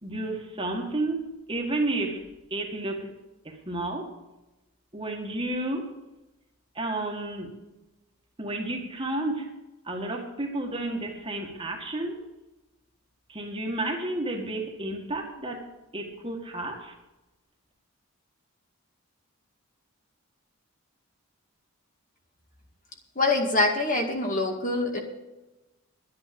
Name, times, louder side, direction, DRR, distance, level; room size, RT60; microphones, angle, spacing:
voice 1, 0.0-2.2 2.5-3.1 3.5-4.1 4.9-5.9 6.8-7.5 8.4-9.5 9.9-12.2 13.3-15.7 15.9-16.9, right 2 dB, 25° right, 2 dB, 1.8 m, -31 dB
voice 2, 23.2-25.0, left 2 dB, 35° left, 2 dB, 2.1 m, -24 dB
11.5 x 10.0 x 6.9 m, 1.0 s
head